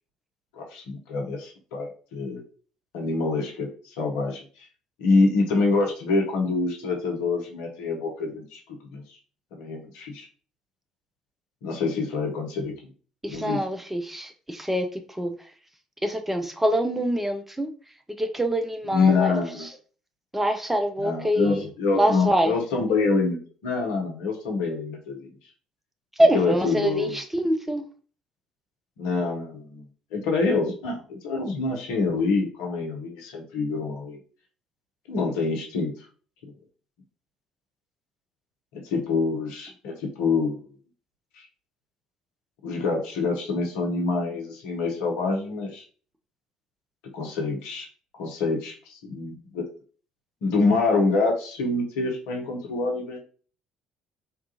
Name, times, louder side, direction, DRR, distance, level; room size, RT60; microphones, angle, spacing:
voice 1, 0.6-2.4 2.9-4.4 5.0-8.6 8.9-9.0 9.5-10.3 11.6-12.7 13.3-13.6 18.8-19.7 21.0-25.3 26.3-27.2 29.0-29.8 30.1-34.2 35.1-35.9 36.4-36.5 38.7-40.6 42.6-45.8 47.1-47.9 48.2-49.6 50.4-53.2, left 3 dB, 65° left, 1 dB, 0.7 m, -26 dB
voice 2, 13.2-14.9 15.1-15.3 16.0-17.7 18.2-19.3 19.6-19.7 20.3-21.6 21.9-22.5 26.2-27.8, right 1 dB, 10° right, 5 dB, 0.4 m, -25 dB
3.6 x 2.3 x 2.8 m, 0.41 s
figure-of-eight pair, 50°, 3 cm